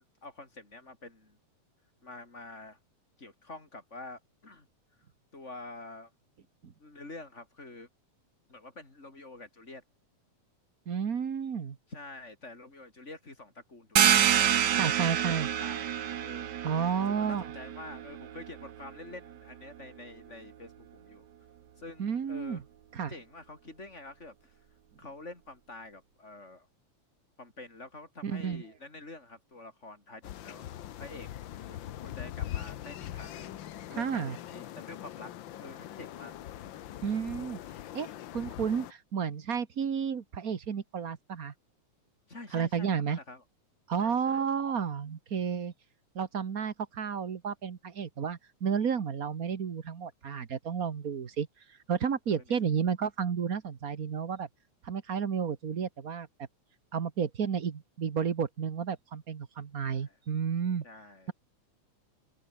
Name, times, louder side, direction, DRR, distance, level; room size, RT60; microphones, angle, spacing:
voice 1, 0.0-1.4 2.0-2.8 3.2-4.7 4.9-5.1 5.3-6.1 6.8-7.9 8.5-9.8 11.9-15.3 15.6-15.9 16.2-16.5 17.0-21.3 21.7-22.6 23.1-24.7 25.0-26.7 27.4-30.7 31.0-31.3 31.7-33.5 33.9-35.3 35.6-36.3 42.3-43.4 43.9-44.5 52.3-52.6 59.9-60.2 60.8-61.3, left 2 dB, 20° left, 4.5 m, -47 dB
voice 2, 10.9-11.8 14.8-15.5 16.6-17.4 22.0-22.6 22.9-23.1 28.2-28.6 34.0-34.4 37.0-37.6 37.9-38.1 38.3-41.5 42.5-43.2 43.9-45.7 46.1-51.5 51.9-54.5 54.8-56.3 56.9-60.8, right 7 dB, 45° right, 1.2 m, -31 dB
sound 1, 14.0-19.3, right 10 dB, 75° right, 0.9 m, -28 dB
sound 2, 30.2-38.9, left 12 dB, 85° left, 1.0 m, -42 dB
open air
omnidirectional pair, 3.3 m